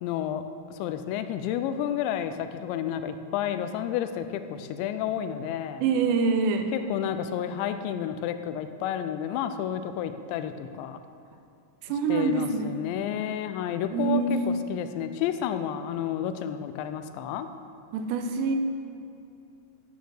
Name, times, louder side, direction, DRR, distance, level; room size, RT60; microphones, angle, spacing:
voice 1, 0.0-0.4 0.7-5.8 6.7-11.0 12.1-17.5, left 10 dB, 85° left, 10 dB, 2.8 m, -31 dB
voice 2, 5.8-6.7 11.8-12.8 13.9-14.4 17.9-18.6, right 5 dB, 80° right, 6 dB, 2.7 m, -25 dB
9.3 x 9.3 x 6.3 m, 2.5 s
omnidirectional pair, 5.3 m